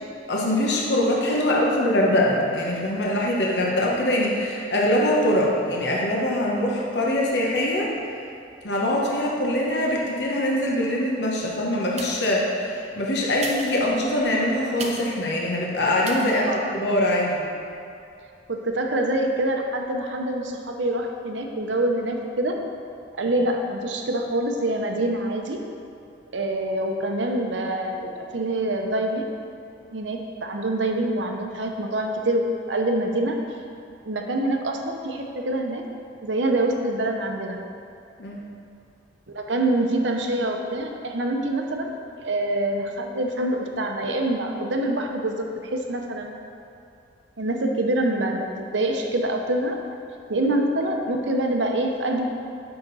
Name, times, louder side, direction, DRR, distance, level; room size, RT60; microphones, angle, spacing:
voice 1, 0.3-7.9 8.6-17.4 38.2-38.4, left 1 dB, 65° left, -3 dB, 1.1 m, -23 dB
sound 1, 11.9-12.5 13.3-15.2 16.0-16.4 16.9-17.0, right 3 dB, 35° right, 0.7 m, -37 dB
voice 2, 16.2-16.6 18.5-22.6 23.2-25.6 26.3-29.3 29.9-33.4 34.0-35.8 36.2-37.6 39.3-41.9 42.2-45.4 45.7-46.3 47.4-49.8 50.3-52.3, right 1 dB, 80° right, 3 dB, 0.9 m, -25 dB
9.4 x 5.9 x 4.1 m, 2.6 s
head